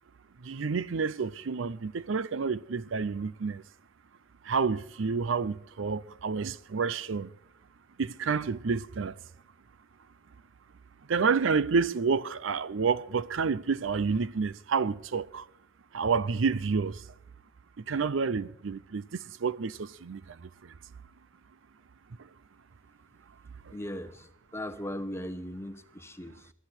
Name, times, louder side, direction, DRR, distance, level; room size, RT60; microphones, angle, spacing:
voice 1, 0.4-3.6 4.4-7.3 8.0-9.2 11.1-15.5 15.9-17.0 17.8-20.7 23.7-23.8, right 5 dB, 70° right, 0.5 m, -29 dB
voice 2, 23.7-26.5, left 1 dB, 15° left, 1.0 m, -38 dB
21.0 x 11.5 x 4.4 m
head